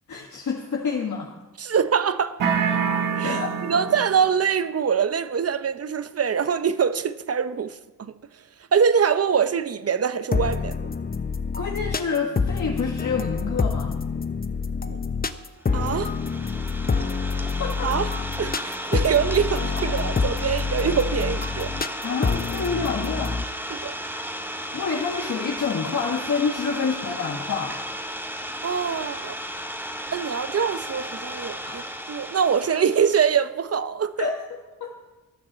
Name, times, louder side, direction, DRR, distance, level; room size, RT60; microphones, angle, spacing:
voice 1, 0.1-1.3 3.2-3.8 11.6-13.9 17.6-18.1 22.0-23.4 24.7-27.8 31.6-31.8 34.2-34.4 34.8-34.9, left 5 dB, 55° left, 1.9 m, -28 dB
voice 2, 1.6-2.4 3.2-8.4 8.7-10.9 14.9-15.0 15.7-16.1 17.8-18.1 18.4-21.8 23.7-24.0 28.6-29.4 30.1-34.4, right 7 dB, 45° right, 0.8 m, -24 dB
sound 1, 2.4-4.3, right 7 dB, 65° right, 1.7 m, -25 dB
sound 2, 10.3-23.4, left 5 dB, 25° left, 0.8 m, -27 dB
Idling, 15.7-33.4, equal, 5° right, 1.7 m, -34 dB
13.5 x 9.9 x 7.4 m
cardioid pair, 85°, 35 cm